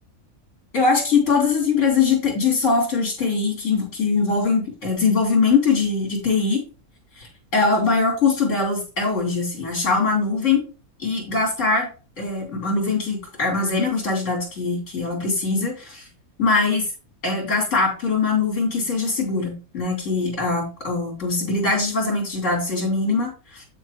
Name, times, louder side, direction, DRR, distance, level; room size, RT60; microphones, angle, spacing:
voice 1, 0.7-6.6 7.2-10.7 11.0-11.9 12.2-16.1 16.4-16.9 17.2-23.6, left 4 dB, 55° left, -2 dB, 3.9 m, -22 dB
8.6 x 7.8 x 3.0 m, 0.33 s
omnidirectional pair, 1.6 m